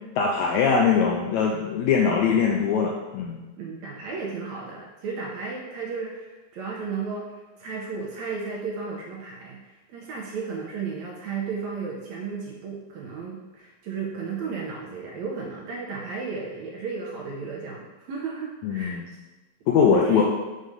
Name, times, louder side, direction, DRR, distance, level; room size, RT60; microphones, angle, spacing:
voice 1, 0.2-3.4 18.6-19.0 19.7-20.2, left 6 dB, 80° left, -1 dB, 1.7 m, -21 dB
voice 2, 3.6-19.0 19.8-20.2, right 5 dB, 75° right, -2 dB, 1.8 m, -34 dB
6.4 x 3.9 x 5.1 m, 1.2 s
omnidirectional pair, 3.8 m